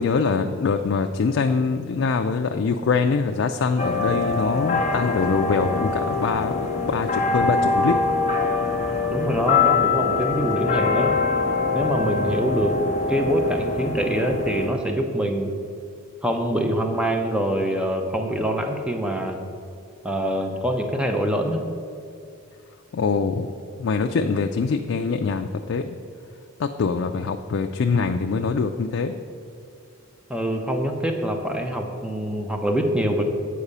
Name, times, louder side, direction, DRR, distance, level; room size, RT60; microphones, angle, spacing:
voice 1, 0.0-7.9 22.9-23.5 23.8-26.0 26.6-29.1, left 5 dB, 55° left, 5 dB, 0.3 m, -24 dB
sound 1, 3.8-14.7, left 4 dB, 30° left, 0.7 m, -23 dB
voice 2, 9.1-11.1 11.7-12.8 13.1-15.6 16.2-19.4 20.0-21.6 30.3-33.2, equal, 5° right, 4 dB, 0.6 m, -24 dB
8.5 x 4.8 x 6.7 m, 2.4 s
head